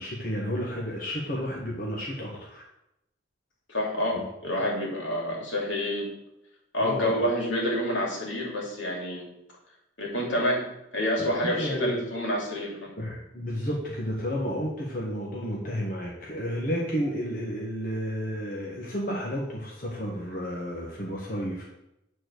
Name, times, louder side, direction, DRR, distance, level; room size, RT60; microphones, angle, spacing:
voice 1, 0.0-2.6 4.1-4.2 6.8-7.3 11.4-12.1 13.0-21.6, equal, 45° left, -3 dB, 1.4 m, -31 dB
voice 2, 3.7-6.1 6.7-9.3 10.0-10.7 10.9-12.9, left 1 dB, 80° left, -2 dB, 3.1 m, -28 dB
9.2 x 4.4 x 6.5 m, 0.84 s
head